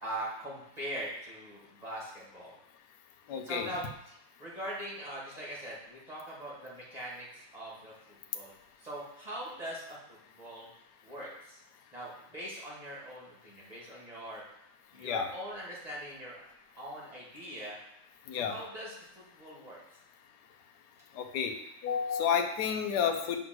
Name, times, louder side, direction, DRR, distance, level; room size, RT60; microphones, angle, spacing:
voice 1, 0.0-2.6 3.4-8.5 8.8-10.7 11.0-11.6 11.9-14.4 14.9-16.4 16.8-17.8 18.3-19.8, right 1 dB, 20° right, -6 dB, 2.1 m, -42 dB
voice 2, 3.3-3.7 15.0-15.2 18.3-18.5 21.2-21.5 21.8-23.4, left 7 dB, 65° left, 4 dB, 1.2 m, -30 dB
7.8 x 3.8 x 6.0 m, 0.77 s
omnidirectional pair, 2.2 m